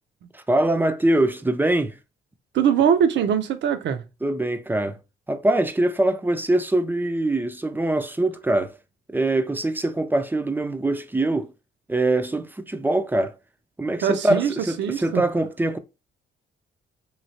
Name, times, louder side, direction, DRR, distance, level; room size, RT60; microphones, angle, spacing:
voice 1, 0.3-1.9 4.2-5.0 5.3-8.7 9.1-11.5 11.9-13.3 13.8-15.8, right 1 dB, 10° right, 0.4 m, -23 dB
voice 2, 2.5-4.0 14.0-15.2, right 8 dB, 65° right, 0.6 m, -22 dB
3.1 x 2.8 x 2.7 m
cardioid pair, 90°, 20 cm